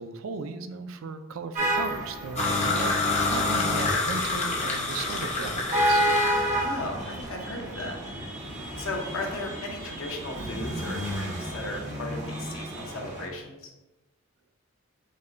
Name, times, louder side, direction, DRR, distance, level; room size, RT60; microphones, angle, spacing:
voice 1, 0.0-3.0 3.3-6.1, right 4 dB, 75° right, 8 dB, 0.4 m, -36 dB
sound 1, 1.6-13.3, equal, 35° right, 1.1 m, -31 dB
sound 2, 2.4-6.6, left 3 dB, 35° left, 0.7 m, -27 dB
voice 2, 6.6-8.0 8.8-13.7, left 2 dB, 85° left, 1 dB, 0.8 m, -36 dB
5.3 x 2.2 x 3.8 m, 1.1 s
head